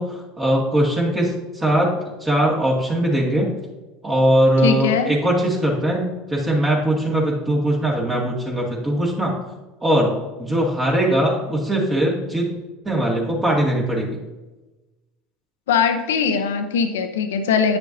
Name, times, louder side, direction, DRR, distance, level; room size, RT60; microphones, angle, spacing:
voice 1, 0.0-1.9 2.2-3.5 4.0-9.3 9.8-10.1 10.4-12.5 12.9-14.1, right 1 dB, 20° right, -3 dB, 2.0 m, -20 dB
voice 2, 4.6-5.1 15.7-17.8, left 6 dB, 80° left, 8 dB, 0.8 m, -20 dB
9.1 x 6.7 x 2.7 m, 1.1 s
hypercardioid pair, 80°, 0 cm